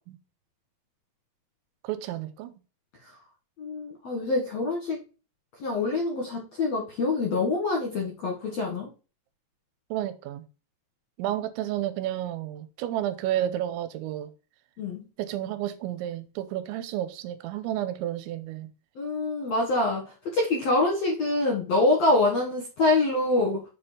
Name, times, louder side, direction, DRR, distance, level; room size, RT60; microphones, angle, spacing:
voice 1, 1.8-2.5 9.9-10.4 11.2-14.3 15.2-18.7, right 12 dB, 85° right, 3.0 m, -31 dB
voice 2, 3.6-5.0 5.6-8.9 14.8-15.0 19.0-23.6, left 2 dB, 65° left, 1.7 m, -25 dB
7.3 x 4.4 x 5.1 m
omnidirectional pair, 5.4 m